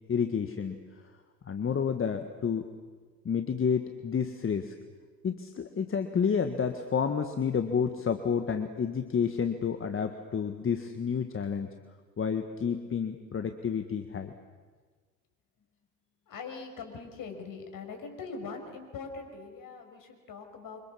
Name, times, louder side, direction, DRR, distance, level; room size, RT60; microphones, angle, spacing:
voice 1, 0.1-0.8 1.5-2.7 3.3-4.7 5.2-11.7 12.2-14.3, left 6 dB, 25° left, 7 dB, 1.8 m, -30 dB
voice 2, 16.3-20.8, left 4 dB, 40° left, 5 dB, 6.3 m, -42 dB
28.5 x 25.5 x 7.2 m, 1.5 s
hypercardioid pair, 75°, 49 cm